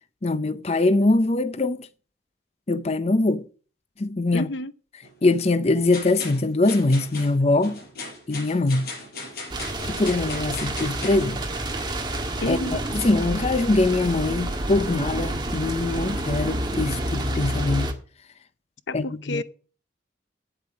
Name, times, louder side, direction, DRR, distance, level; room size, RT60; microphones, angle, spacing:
voice 1, 0.2-1.9 2.7-3.4 4.0-4.5 5.2-7.8 8.3-8.9 9.9-11.5 12.5-17.9 18.9-19.4, left 2 dB, 35° left, 0.6 m, -23 dB
voice 2, 4.3-4.7 12.4-12.8 18.9-19.4, left 2 dB, 75° left, 0.7 m, -29 dB
sound 1, 5.0-5.5 5.9-11.2, left 3 dB, 55° left, 4.9 m, -37 dB
sound 2, 9.5-17.9, right 1 dB, 25° right, 1.5 m, -29 dB
9.0 x 8.0 x 6.2 m
head